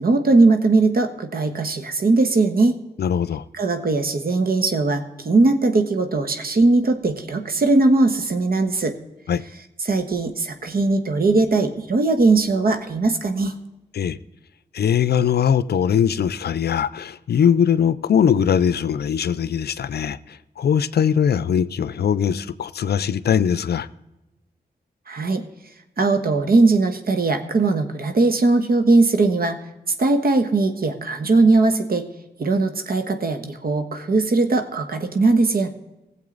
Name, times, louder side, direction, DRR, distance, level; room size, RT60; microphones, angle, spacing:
voice 1, 0.0-2.8 3.5-8.9 9.8-13.5 25.1-25.4 26.0-29.6 30.0-32.0 32.4-35.7, right 3 dB, 60° right, 1.3 m, -19 dB
voice 2, 3.0-3.4 9.3-9.4 13.9-14.2 14.7-20.2 20.6-23.9, left 8 dB, 70° left, 0.5 m, -20 dB
17.5 x 7.5 x 3.9 m
cardioid pair, 50°, 17 cm